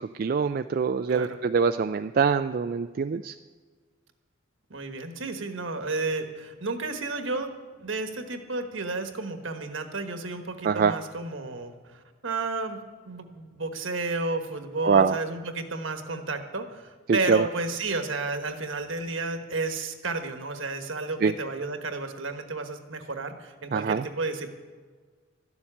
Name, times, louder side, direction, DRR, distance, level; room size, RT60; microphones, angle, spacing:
voice 1, 0.0-3.3 10.6-10.9 14.8-15.2 17.1-17.5 21.2-21.3 23.7-24.0, right 5 dB, 45° right, 8 dB, 0.3 m, -24 dB
voice 2, 1.1-1.4 4.7-7.5 7.8-12.8 13.1-24.5, right 3 dB, 70° right, 6 dB, 1.3 m, -32 dB
13.5 x 7.2 x 9.9 m, 1.5 s
head